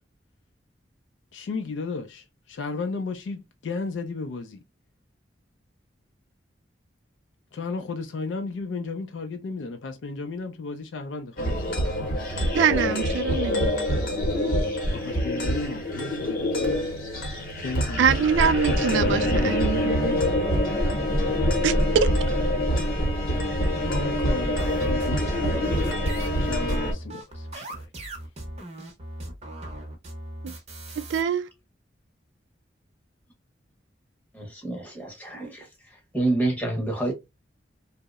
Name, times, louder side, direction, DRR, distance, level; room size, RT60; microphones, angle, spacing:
voice 1, 1.3-4.6 7.5-12.7 14.9-16.6 17.6-18.1 18.9-19.6 23.9-26.0 26.3-28.1, left 3 dB, 80° left, 0.4 m, -34 dB
sound 1, 11.4-26.9, equal, 50° left, 0.8 m, -25 dB
voice 2, 12.5-13.7 18.0-20.2 21.6-22.1 30.4-30.5 31.0-31.5, right 7 dB, 85° right, 0.3 m, -24 dB
sound 2, 24.6-31.2, right 1 dB, 35° right, 0.6 m, -39 dB
voice 3, 34.3-35.6 36.1-37.1, right 2 dB, 10° left, 0.7 m, -27 dB
2.7 x 2.0 x 2.2 m
head